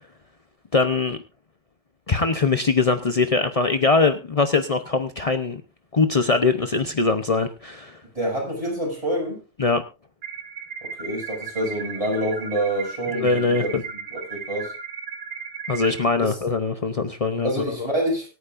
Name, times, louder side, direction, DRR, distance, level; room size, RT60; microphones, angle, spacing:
voice 1, 0.7-1.2 2.1-5.6 5.9-8.0 9.6-9.8 13.1-13.8 15.7-17.8, left 4 dB, 55° left, 8 dB, 0.4 m, -22 dB
voice 2, 8.1-9.4 10.8-14.7 16.2-16.4 17.4-18.3, right 1 dB, 20° right, -2 dB, 6.7 m, -27 dB
sound 1, 10.2-16.0, right 6 dB, 65° right, 1.8 m, -35 dB
24.5 x 9.4 x 2.5 m, 0.30 s
omnidirectional pair, 1.8 m